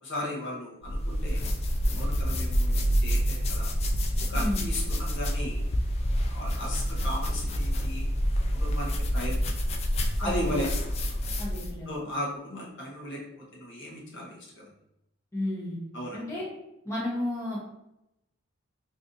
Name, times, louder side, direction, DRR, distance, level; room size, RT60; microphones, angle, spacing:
voice 1, 0.0-1.5 1.9-3.7 4.2-5.6 6.3-8.1 8.5-9.4 10.2-11.2 11.9-14.7 15.9-16.2, left 1 dB, 55° left, -3 dB, 0.8 m, -36 dB
sound 1, 0.8-11.8, equal, 30° left, 0.3 m, -27 dB
voice 2, 4.3-4.6 10.2-10.5 11.4-11.9 15.3-15.8 16.1-16.5 16.8-17.6, left 1 dB, 15° left, -7 dB, 0.8 m, -32 dB
2.6 x 2.5 x 3.7 m, 0.85 s
head